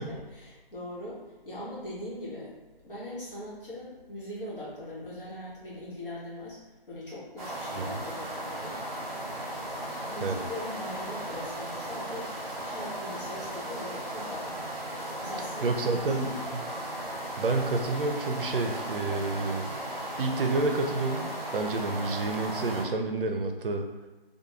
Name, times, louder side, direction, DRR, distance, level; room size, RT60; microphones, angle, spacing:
voice 1, 0.0-2.5 2.8-6.6 6.9-8.8 10.1-12.3 12.6-14.6 15.2-16.6, left 1 dB, 65° left, -8 dB, 1.1 m, -41 dB
sound 1, 7.4-22.8, right 1 dB, 40° right, 0.8 m, -36 dB
voice 2, 15.6-16.6 17.4-19.7 20.2-23.8, right 3 dB, 65° right, 5 dB, 0.5 m, -29 dB
2.4 x 2.3 x 3.0 m, 1.2 s
figure-of-eight pair, 160°, 29 cm